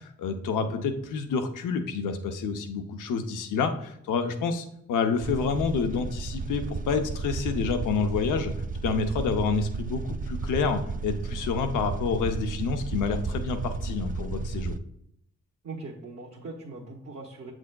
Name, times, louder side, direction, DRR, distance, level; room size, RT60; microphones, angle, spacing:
voice 1, 0.0-8.5 8.8-14.8, left 5 dB, 90° left, 7 dB, 0.7 m, -28 dB
sound 1, 5.2-14.8, right 4 dB, 30° right, 0.3 m, -33 dB
voice 2, 15.6-17.5, right 3 dB, 60° right, -3 dB, 1.2 m, -40 dB
7.4 x 6.1 x 2.2 m, 0.75 s
supercardioid pair, 50°, 30 cm